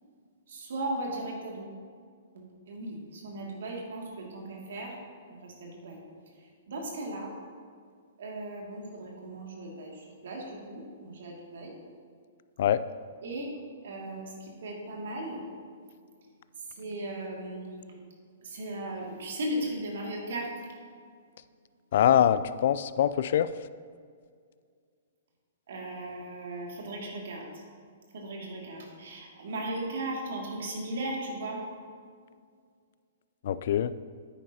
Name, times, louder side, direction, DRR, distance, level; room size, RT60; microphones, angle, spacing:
voice 1, 0.5-1.7 2.3-4.9 5.3-6.0 6.7-7.3 8.2-11.7 13.2-13.5 13.8-15.4 16.8-17.8 18.4-20.5 25.7-27.5 28.1-31.6, right 1 dB, 65° right, -1 dB, 2.3 m, -37 dB
voice 2, 21.9-23.5 33.4-33.9, left 10 dB, 60° left, 15 dB, 0.4 m, -23 dB
9.9 x 9.3 x 2.9 m, 2.1 s
hypercardioid pair, 120°, 0 cm